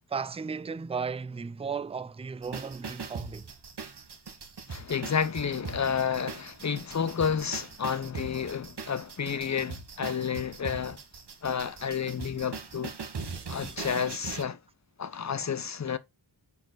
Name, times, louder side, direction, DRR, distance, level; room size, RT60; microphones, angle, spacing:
voice 1, 0.1-3.5 13.3-13.6, right 5 dB, 15° right, 0.3 m, -35 dB
sound 1, 2.4-14.4, right 5 dB, 55° right, 1.4 m, -41 dB
voice 2, 4.7-11.0 11.4-12.9 13.5-14.6 15.0-16.0, left 7 dB, 35° left, 0.7 m, -30 dB
6.8 x 4.5 x 3.9 m
wide cardioid pair, 65°, 49 cm